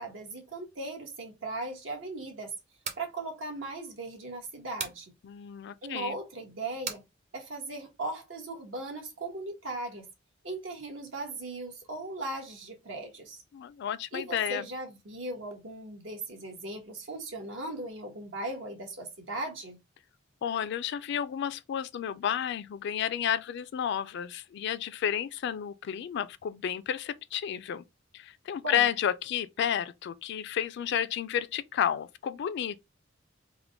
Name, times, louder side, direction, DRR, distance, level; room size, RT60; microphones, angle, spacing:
voice 1, 0.0-2.5 3.0-5.1 5.8-7.0 7.3-10.1 10.4-13.4 14.1-19.8 28.6-28.9, right 2 dB, 75° right, 1.2 m, -38 dB
sound 1, 2.6-3.1 4.8-5.0 6.8-7.1, right 6 dB, 35° right, 0.6 m, -36 dB
voice 2, 5.2-6.2 13.5-14.7 20.4-27.8 28.1-32.8, left 9 dB, 60° left, 0.3 m, -31 dB
3.6 x 2.1 x 3.3 m
head